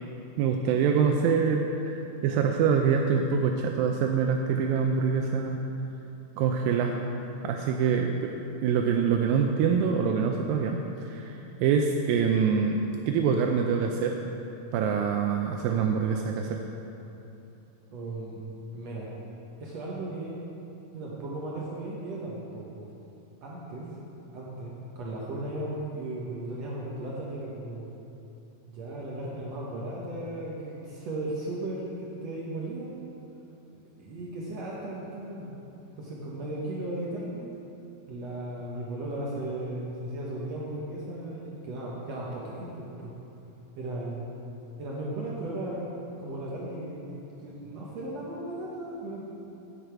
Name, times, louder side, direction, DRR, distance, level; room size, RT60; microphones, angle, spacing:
voice 1, 0.4-5.6 6.4-7.0 7.4-8.3 8.6-14.2 14.7-16.6, right 6 dB, 85° right, 3 dB, 2.2 m, -25 dB
voice 2, 17.9-18.4 18.7-19.1 19.6-20.4 20.9-22.9 23.4-23.9 24.3-27.9 28.6-33.0 34.0-35.5 36.0-37.5 38.1-43.1 43.8-44.2 44.8-45.8 46.2-49.2, right 1 dB, 65° right, -5 dB, 1.7 m, -36 dB
10.0 x 9.0 x 4.6 m, 2.9 s
omnidirectional pair, 4.2 m